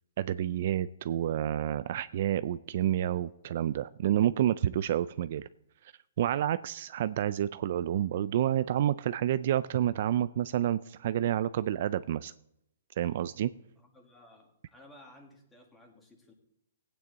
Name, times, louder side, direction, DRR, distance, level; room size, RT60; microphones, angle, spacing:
voice 1, 0.2-5.5 6.2-12.3 13.0-13.5, right 11 dB, 50° right, 14 dB, 0.3 m, -29 dB
voice 2, 13.8-16.3, left 1 dB, 10° left, 3 dB, 1.8 m, -56 dB
16.0 x 9.0 x 4.0 m, 0.81 s
hypercardioid pair, 160°, 0 cm